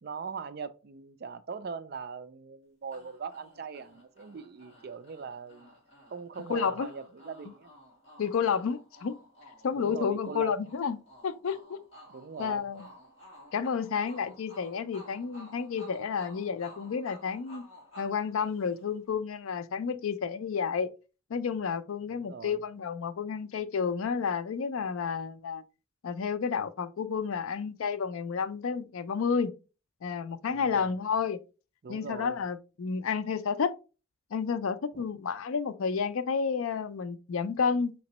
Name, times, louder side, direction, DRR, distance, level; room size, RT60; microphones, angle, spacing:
voice 1, 0.0-5.7 6.1-7.7 9.7-10.7 12.1-12.7 22.1-22.6 30.5-31.0 31.8-32.4 34.9-35.0, right 5 dB, 45° right, 0.4 m, -41 dB
sound 1, 2.9-19.1, equal, 25° left, 1.8 m, -54 dB
voice 2, 6.5-6.9 8.2-9.2 9.6-11.0 11.2-11.8 12.4-12.9 13.5-17.6 18.0-20.9 21.3-25.6 26.0-29.5 30.0-31.4 31.9-33.7 34.3-37.9, left 6 dB, 75° left, 0.4 m, -31 dB
5.2 x 2.9 x 2.9 m
head